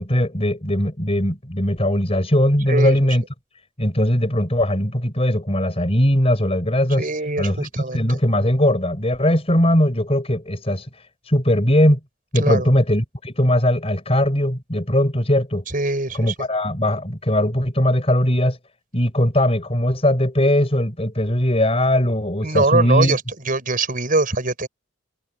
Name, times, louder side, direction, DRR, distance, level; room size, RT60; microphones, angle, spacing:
voice 1, 0.0-3.2 3.8-7.1 7.4-10.9 11.3-12.0 12.3-15.6 16.1-18.6 18.9-23.2, left 1 dB, 30° left, 5.1 m, -19 dB
voice 2, 7.0-8.2 12.4-12.6 15.7-16.3 22.4-23.2 23.5-24.7, right 3 dB, 45° right, 6.6 m, -22 dB
head